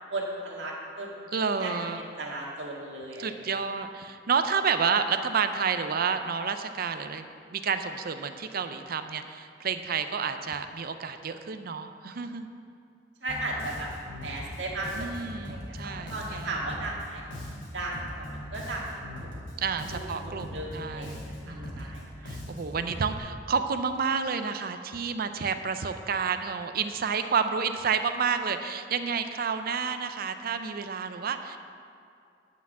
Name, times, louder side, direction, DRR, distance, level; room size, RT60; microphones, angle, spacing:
voice 1, 0.1-1.2 1.6-3.5 13.2-13.9 14.2-17.2 17.7-19.3 19.9-20.0 20.2-22.0, right 2 dB, 70° right, -3 dB, 1.9 m, -36 dB
voice 2, 1.3-2.0 3.2-12.5 15.0-16.5 19.6-21.2 21.4-31.6, right 6 dB, 55° right, 9 dB, 0.5 m, -30 dB
Bass guitar, 13.3-23.2, equal, 80° left, 2.6 m, -40 dB
9.6 x 5.9 x 7.3 m, 2.4 s
head